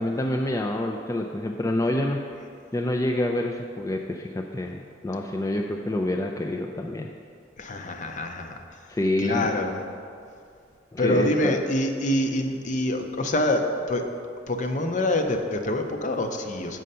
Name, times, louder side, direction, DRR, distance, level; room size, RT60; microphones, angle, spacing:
voice 1, 0.0-2.2 2.7-7.1 8.9-9.5 10.9-11.6, left 1 dB, 15° left, 2 dB, 0.3 m, -27 dB
voice 2, 7.6-8.6 9.2-9.8 11.0-14.1 14.5-16.8, left 1 dB, 45° left, 5 dB, 0.7 m, -26 dB
7.7 x 6.3 x 5.5 m, 2.4 s
head